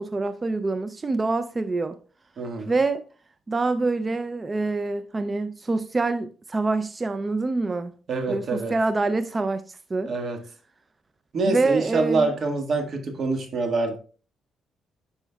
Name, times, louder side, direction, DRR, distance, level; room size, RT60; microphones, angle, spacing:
voice 1, 0.0-2.0 2.7-3.0 3.5-7.9 8.3-10.1 11.5-12.3, right 3 dB, 25° right, 0.4 m, -26 dB
voice 2, 2.4-2.7 8.1-8.7 10.0-10.4 11.3-14.0, right 3 dB, 55° right, 1.6 m, -25 dB
9.9 x 5.5 x 2.3 m
cardioid pair, 90°, 0 cm